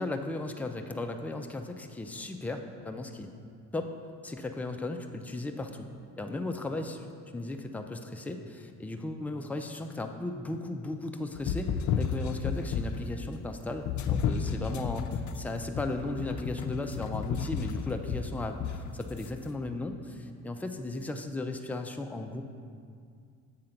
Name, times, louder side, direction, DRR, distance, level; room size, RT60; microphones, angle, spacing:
voice 1, 0.0-3.3 3.7-3.9 4.2-5.9 6.2-22.4, left 2 dB, 5° left, 4 dB, 0.4 m, -36 dB
sound 1, 11.4-13.1 13.9-19.3, left 6 dB, 55° left, 0.5 m, -32 dB
7.6 x 3.8 x 5.7 m, 2.2 s
supercardioid pair, 90°, 34 cm